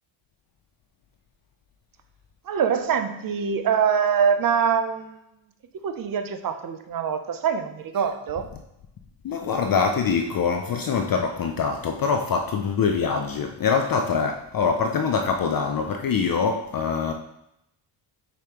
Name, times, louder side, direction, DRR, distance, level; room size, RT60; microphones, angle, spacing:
voice 1, 2.5-5.2 5.8-8.5, right 7 dB, 45° right, 8 dB, 0.6 m, -24 dB
voice 2, 9.2-17.1, left 5 dB, 45° left, 5 dB, 0.5 m, -24 dB
6.8 x 5.0 x 2.9 m, 0.83 s
wide cardioid pair, 140°, 50 cm